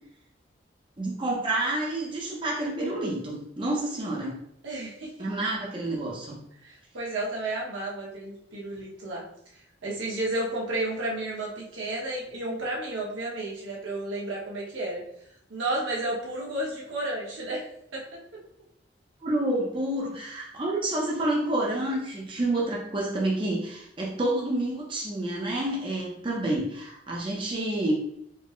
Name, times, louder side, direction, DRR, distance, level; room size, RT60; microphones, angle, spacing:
voice 1, 1.0-4.4 5.2-6.4 19.2-27.9, right 1 dB, 25° right, -3 dB, 0.6 m, -29 dB
voice 2, 4.6-5.1 6.6-9.2 9.8-15.0 15.5-17.6 17.9-18.2, right 2 dB, 90° right, -4 dB, 1.1 m, -32 dB
4.4 x 2.1 x 3.0 m, 0.75 s
head